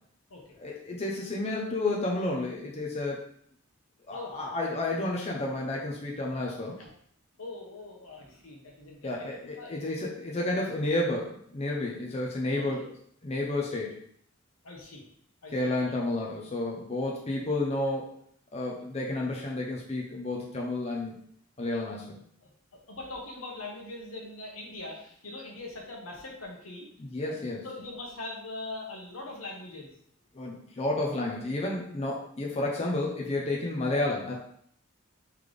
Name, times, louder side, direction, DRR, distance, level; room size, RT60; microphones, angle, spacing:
voice 1, 0.6-3.3 4.1-6.8 9.0-12.8 13.2-14.0 15.5-18.1 18.5-21.1 21.6-22.2 27.0-27.6 30.3-34.3, left 2 dB, 30° left, -2 dB, 0.6 m, -31 dB
voice 2, 4.1-4.6 6.8-6.9 7.4-9.3 9.6-9.7 12.6-12.9 13.4-13.5 14.6-15.0 15.4-16.0 22.4-26.9 27.2-29.9, left 2 dB, 75° left, 0 dB, 1.0 m, -42 dB
3.9 x 3.3 x 3.3 m, 0.65 s
head